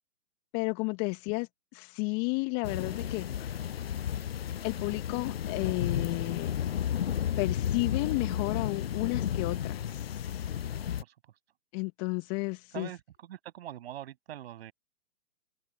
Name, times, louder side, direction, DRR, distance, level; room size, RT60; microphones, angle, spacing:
voice 1, 0.5-3.5 4.6-6.5 7.4-10.4 11.7-12.9, left 31 dB, 20° left, 1.6 m, -32 dB
sound 1, 2.6-11.0, left 9 dB, 40° left, 0.7 m, -33 dB
voice 2, 12.7-14.7, right 12 dB, 40° right, 7.0 m, -43 dB
open air
figure-of-eight pair, 135°, 45 cm